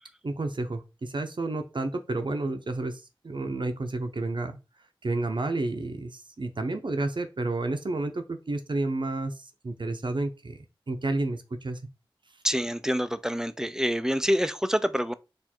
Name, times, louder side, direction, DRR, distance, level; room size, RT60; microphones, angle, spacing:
voice 1, 0.2-4.6 5.0-11.8, right 2 dB, 65° right, 0.7 m, -31 dB
voice 2, 12.4-15.1, equal, 5° right, 0.4 m, -26 dB
4.4 x 2.6 x 4.3 m
wide cardioid pair, 70°, 9 cm